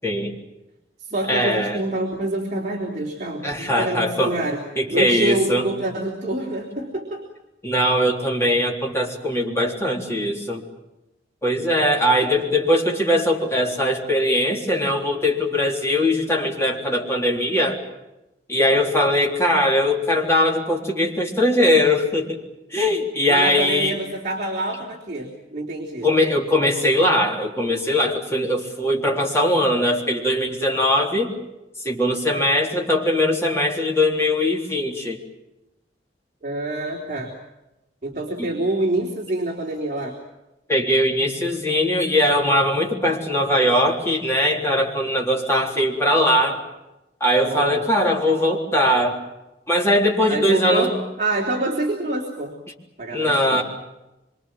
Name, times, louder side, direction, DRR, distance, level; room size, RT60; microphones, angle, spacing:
voice 1, 0.0-0.3 1.3-1.8 3.4-4.4 4.8-5.7 7.6-10.6 11.4-17.8 18.5-22.4 22.7-24.0 26.0-31.3 31.8-35.2 38.4-38.5 40.7-46.6 47.2-49.2 49.7-50.9 53.1-53.6, left 1 dB, 15° left, -1 dB, 3.7 m, -20 dB
voice 2, 1.0-4.6 4.9-7.2 23.3-26.1 36.4-37.4 38.0-40.2 47.4-47.9 50.3-52.5 53.0-53.6, right 2 dB, 40° right, -1 dB, 3.7 m, -26 dB
25.5 x 25.5 x 7.6 m, 0.97 s
head